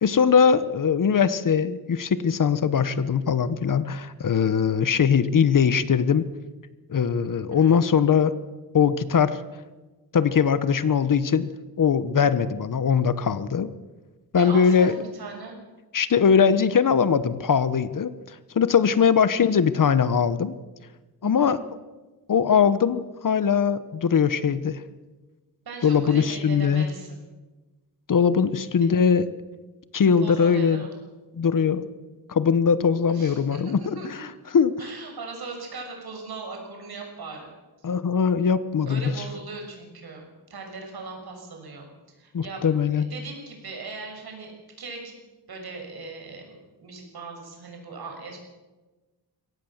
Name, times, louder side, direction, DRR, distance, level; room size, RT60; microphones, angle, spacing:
voice 1, 0.0-6.3 6.9-8.3 8.7-9.4 10.1-11.5 11.8-13.7 14.3-14.9 15.9-18.1 18.5-20.5 21.2-21.6 22.3-24.8 25.8-26.9 28.1-29.2 29.9-30.8 31.4-31.9 32.3-34.3 34.5-34.8 37.8-39.0 42.3-43.1, left 6 dB, 50° left, 14 dB, 1.1 m, -21 dB
voice 2, 7.5-7.8 14.4-15.6 19.0-19.1 21.2-21.5 25.6-27.2 28.8-28.9 30.2-30.9 33.1-34.2 34.8-37.5 37.8-37.9 38.8-41.9 42.2-42.7 42.9-44.5 44.8-45.1 45.5-48.4, right 3 dB, 65° right, 2 dB, 6.6 m, -39 dB
22.5 x 17.5 x 7.3 m, 1.2 s
wide cardioid pair, 120°, 40 cm